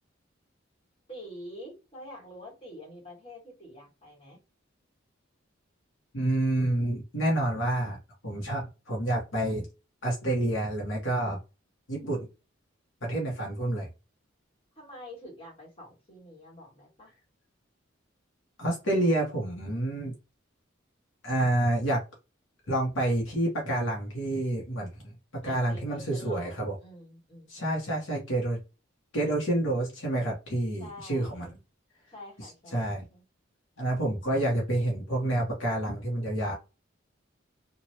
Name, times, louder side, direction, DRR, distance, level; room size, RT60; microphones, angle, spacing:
voice 1, 1.1-4.4 14.8-17.1 25.4-27.8 30.8-31.6 32.1-33.2, left 1 dB, 30° left, 1.9 m, -47 dB
voice 2, 6.1-8.0 8.2-9.7 10.0-11.4 11.9-12.3 13.0-13.9 18.6-20.1 21.2-22.0 22.7-25.1 25.4-26.7 27.5-28.6 29.1-31.5 32.7-33.0 33.8-36.5, right 1 dB, 75° left, 1.1 m, -28 dB
3.1 x 2.5 x 2.8 m
head